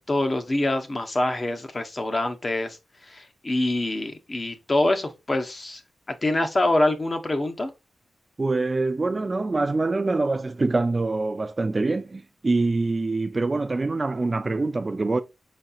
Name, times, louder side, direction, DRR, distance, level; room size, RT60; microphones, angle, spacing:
voice 1, 0.0-2.8 3.0-5.8 6.1-7.7, left 1 dB, 30° left, 0.8 m, -25 dB
voice 2, 8.4-15.2, right 3 dB, 30° right, 0.4 m, -25 dB
5.1 x 4.1 x 2.4 m
wide cardioid pair, 110°, 0 cm